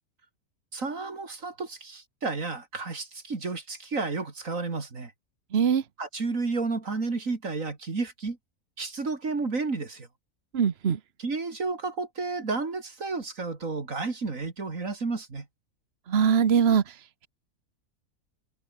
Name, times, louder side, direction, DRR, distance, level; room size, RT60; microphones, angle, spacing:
voice 1, 0.7-5.1 6.0-8.4 8.8-10.1 11.2-15.5, right 3 dB, 65° right, 3.2 m, -31 dB
voice 2, 5.5-5.8 10.5-11.0 16.1-16.9, right 7 dB, 45° right, 1.3 m, -22 dB
omnidirectional pair, 1.5 m